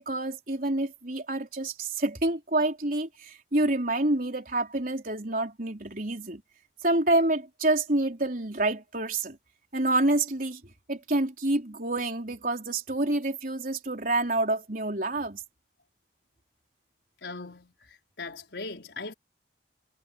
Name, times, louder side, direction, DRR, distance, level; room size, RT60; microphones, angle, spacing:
voice 1, 0.0-6.4 6.8-9.4 9.7-10.6 10.9-15.4, right 2 dB, 50° right, 4.2 m, -27 dB
voice 2, 17.2-19.1, left 3 dB, 80° left, 4.6 m, -40 dB
head